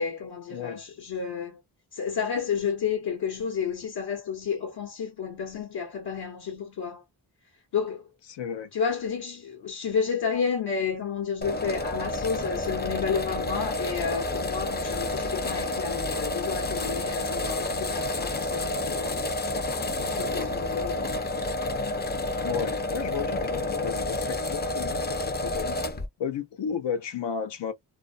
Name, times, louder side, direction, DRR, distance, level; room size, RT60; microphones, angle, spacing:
voice 1, 0.0-1.6 1.9-7.0 7.7-8.1 8.7-19.3 20.0-21.1, left 6 dB, 65° left, 1.1 m, -31 dB
voice 2, 8.3-8.7 22.4-25.8 26.2-27.7, left 7 dB, 80° left, 0.7 m, -33 dB
sound 1, 11.4-26.1, left 2 dB, 25° left, 0.5 m, -30 dB
2.5 x 2.0 x 2.4 m
cardioid pair, 75°, 43 cm